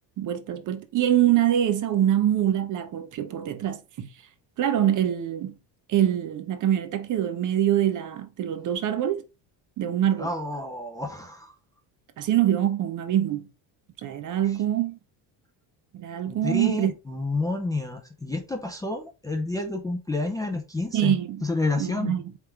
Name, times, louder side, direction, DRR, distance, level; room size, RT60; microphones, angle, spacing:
voice 1, 0.2-4.1 4.6-5.5 5.9-9.2 9.8-10.3 12.2-13.5 14.0-15.0 15.9-16.9 20.9-21.4 21.8-22.3, right 11 dB, 45° right, 0.8 m, -24 dB
voice 2, 10.2-11.5 16.3-22.1, left 2 dB, 10° left, 0.5 m, -29 dB
4.4 x 3.4 x 3.5 m
cardioid pair, 155°, 43 cm